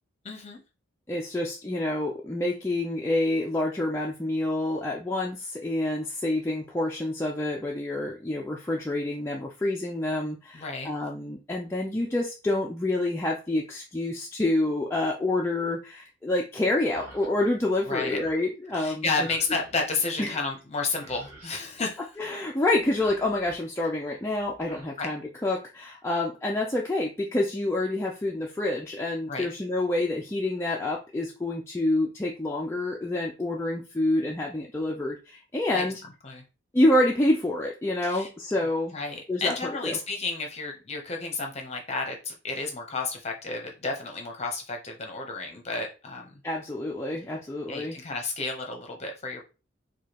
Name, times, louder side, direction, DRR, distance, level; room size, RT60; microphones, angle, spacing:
voice 1, 0.2-0.6 10.5-10.9 17.8-18.2 18.7-22.1 25.0-25.1 29.3-29.5 35.7-35.8 36.2-36.4 38.0-38.3 38.6-38.7 38.9-46.4 47.7-49.4, left 3 dB, 30° left, 2 dB, 0.7 m, -32 dB
voice 2, 1.1-19.3 20.2-20.4 22.2-36.0 36.7-38.9 39.3-39.5 39.8-40.0 46.4-48.0, left 1 dB, 10° left, -2 dB, 0.3 m, -27 dB
sound 1, 16.9-17.3 17.7-18.4 19.1-19.9 20.6-20.7 20.9-21.6 22.7-23.6 24.4-24.8, right 1 dB, 15° right, 1.3 m, -49 dB
4.8 x 2.2 x 2.9 m, 0.32 s
head